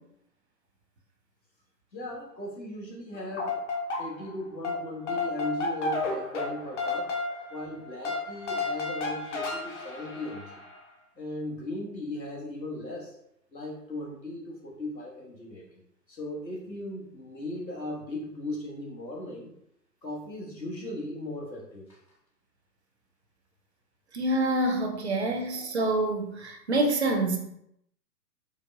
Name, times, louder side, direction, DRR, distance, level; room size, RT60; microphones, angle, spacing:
voice 1, 1.9-3.6 4.0-7.1 7.5-10.6 11.2-13.1 13.5-15.8 16.1-19.5 20.0-22.0, left 1 dB, 90° left, -3 dB, 1.2 m, -37 dB
sound 1, 3.1-4.4 4.6-10.8, left 3 dB, 45° left, 0.7 m, -32 dB
voice 2, 24.1-27.4, right 2 dB, 45° right, 3 dB, 0.5 m, -26 dB
4.6 x 2.1 x 2.6 m, 0.75 s
figure-of-eight pair, 125°, 49 cm